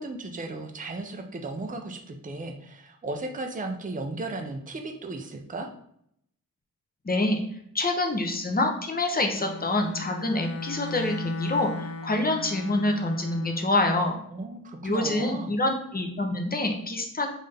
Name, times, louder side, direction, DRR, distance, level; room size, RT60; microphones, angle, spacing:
voice 1, 0.0-5.7 14.3-15.5, right 2 dB, 20° right, 4 dB, 0.6 m, -35 dB
voice 2, 7.0-7.4 7.7-14.2 14.8-17.3, left 2 dB, 25° left, 3 dB, 0.8 m, -26 dB
Bowed string instrument, 9.3-13.8, left 2 dB, 45° left, 0.4 m, -37 dB
3.7 x 2.6 x 3.4 m, 0.70 s
cardioid pair, 60°, 36 cm